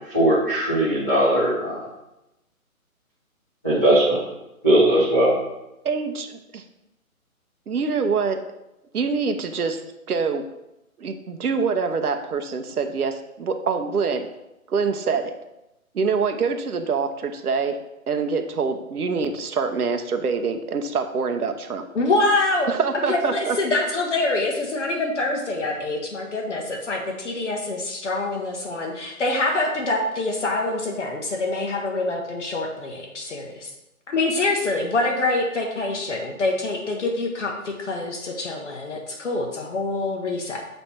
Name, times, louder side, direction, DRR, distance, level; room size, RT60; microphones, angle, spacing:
voice 1, 0.1-1.8 3.6-4.2 4.6-5.3, right 1 dB, 10° right, -15 dB, 0.6 m, -19 dB
voice 2, 5.8-6.6 7.7-8.4 8.9-9.8 10.1-10.4 11.0-14.3 14.7-15.3 15.9-17.8 18.1-21.9 22.7-23.6, right 5 dB, 85° right, 6 dB, 0.9 m, -25 dB
voice 3, 21.9-22.7 23.1-33.7 34.1-40.7, left 2 dB, 55° left, 1 dB, 1.0 m, -25 dB
7.2 x 3.4 x 4.3 m, 0.93 s
hypercardioid pair, 165°, 44 cm